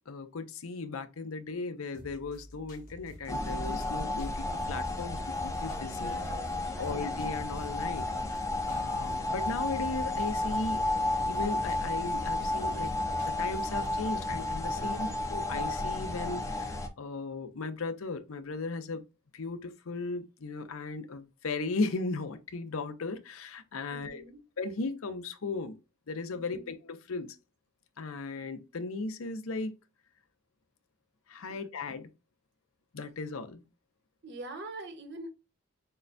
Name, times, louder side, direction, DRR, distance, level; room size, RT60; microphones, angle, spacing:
voice 1, 0.1-6.2 6.8-8.1 8.3-10.9 11.2-12.9 13.4-19.0 19.3-24.2 24.6-25.7 26.1-27.3 28.0-29.7 31.3-32.1 32.9-33.6, left 3 dB, 85° left, 0.6 m, -36 dB
sound 1, 1.9-13.9, left 1 dB, 40° left, 1.3 m, -50 dB
sound 2, 3.3-16.9, left 2 dB, 15° left, 0.6 m, -32 dB
voice 2, 5.8-7.2 14.8-15.3 23.9-24.4 26.3-26.7 31.5-31.6 34.2-35.3, right 2 dB, 55° right, 1.0 m, -45 dB
6.5 x 2.2 x 2.5 m
head